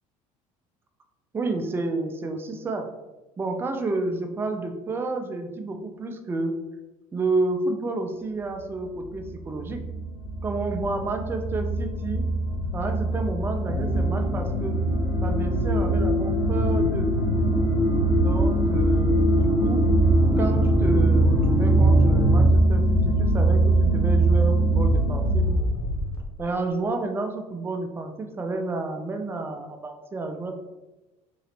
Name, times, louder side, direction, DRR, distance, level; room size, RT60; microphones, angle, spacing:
voice 1, 1.3-2.9 3.4-6.5 7.1-9.8 10.4-12.3 12.7-14.8 15.2-17.1 18.2-19.9 20.4-25.5 26.4-30.5, right 3 dB, 10° right, 5 dB, 0.4 m, -30 dB
sound 1, 8.7-26.2, right 1 dB, 75° left, 0.5 m, -22 dB
sound 2, 13.7-22.4, equal, 55° right, 0.8 m, -27 dB
3.0 x 2.7 x 3.0 m, 1.1 s
figure-of-eight pair, 60°, 18 cm